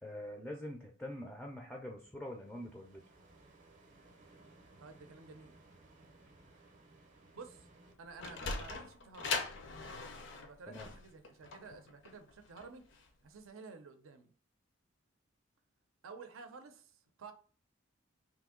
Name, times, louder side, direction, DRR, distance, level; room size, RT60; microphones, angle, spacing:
voice 1, 0.0-3.0 10.7-10.9, left 1 dB, 5° left, 0.4 m, -45 dB
sound 1, 2.3-7.9, right 2 dB, 40° right, 0.6 m, -61 dB
voice 2, 4.8-5.5 7.3-7.7 8.0-9.4 10.3-12.8 13.2-14.3 16.0-17.3, right 4 dB, 85° right, 0.5 m, -52 dB
Sliding door, 7.9-13.1, left 4 dB, 60° left, 0.5 m, -41 dB
2.9 x 2.6 x 3.6 m
head